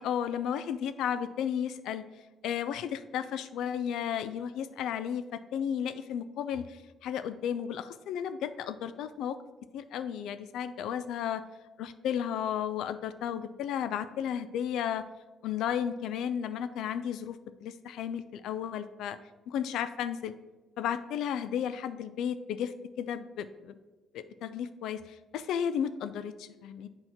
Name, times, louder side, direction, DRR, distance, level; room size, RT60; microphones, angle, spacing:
voice 1, 0.0-2.0 2.4-9.4 9.7-11.4 11.8-15.0 15.4-17.4 17.6-19.2 19.5-20.3 20.8-23.8 24.1-26.9, left 9 dB, 90° left, 12 dB, 0.3 m, -33 dB
7.7 x 2.8 x 5.9 m, 1.2 s
cardioid pair, 170°, 0 cm